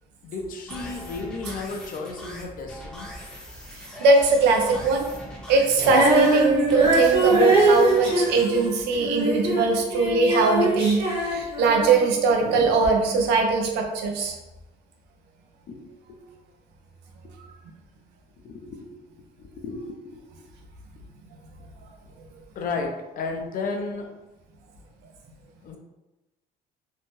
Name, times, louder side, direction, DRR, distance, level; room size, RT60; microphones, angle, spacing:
voice 1, 0.2-3.1 15.7-15.8 16.1-16.2 18.4-18.9 19.4-20.2 22.6-24.1 25.6-25.8, left 3 dB, 55° left, 3 dB, 0.5 m, -33 dB
sound 1, 0.7-8.7, equal, 5° left, 0.7 m, -41 dB
voice 2, 4.0-5.1 5.5-14.4, right 4 dB, 85° right, 2 dB, 0.6 m, -21 dB
Female singing, 5.8-12.1 12.8-12.9, right 1 dB, 30° right, 0.9 m, -22 dB
2.7 x 2.1 x 3.0 m, 1.0 s
cardioid pair, 110°, 17 cm